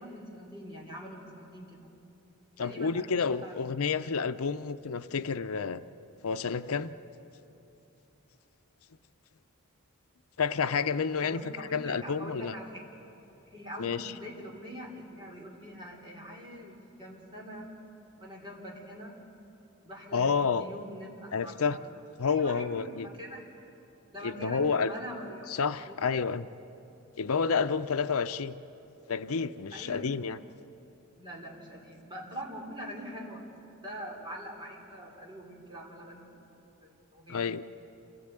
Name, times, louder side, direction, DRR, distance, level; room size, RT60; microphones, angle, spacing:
voice 1, 0.0-1.9 2.6-3.6 11.2-12.8 13.5-17.7 18.2-19.2 19.8-21.8 22.3-23.4 24.1-25.5 25.8-26.0 29.7-30.2 31.2-33.5 33.8-36.5 36.8-37.4, equal, 20° right, -1 dB, 3.5 m, -44 dB
voice 2, 2.6-5.8 6.2-6.9 10.4-12.5 13.8-14.1 20.1-20.7 21.3-21.8 22.2-23.1 24.2-24.9 25.5-26.5 27.2-28.5 29.1-30.4 37.3-37.6, left 5 dB, 80° left, 11 dB, 0.6 m, -29 dB
27.0 x 16.5 x 9.0 m, 2.9 s
head